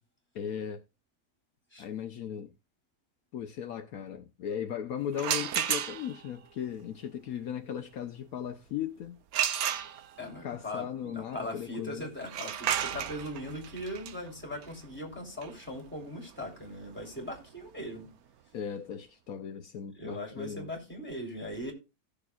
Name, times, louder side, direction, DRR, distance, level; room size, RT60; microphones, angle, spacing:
voice 1, 0.3-0.8 1.8-2.5 3.3-9.2 10.4-12.1 18.5-20.7, left 9 dB, 70° left, 1.2 m, -37 dB
sound 1, 5.1-6.3 9.3-10.4 12.2-17.9, right 9 dB, 70° right, 1.2 m, -33 dB
voice 2, 10.2-18.1 19.9-21.7, left 1 dB, 5° left, 3.4 m, -39 dB
17.0 x 6.9 x 2.4 m
omnidirectional pair, 1.7 m